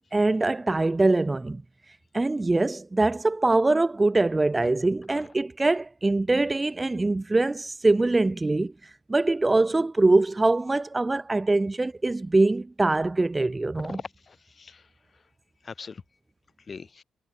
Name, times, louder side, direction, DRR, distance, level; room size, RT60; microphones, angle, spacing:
voice 1, 0.1-1.6 2.1-8.7 9.1-14.0, right 2 dB, 15° right, 2.2 m, -23 dB
voice 2, 13.7-14.9 15.6-16.0 16.7-17.0, left 5 dB, 35° left, 7.5 m, -41 dB
cardioid pair, 105°, 0 cm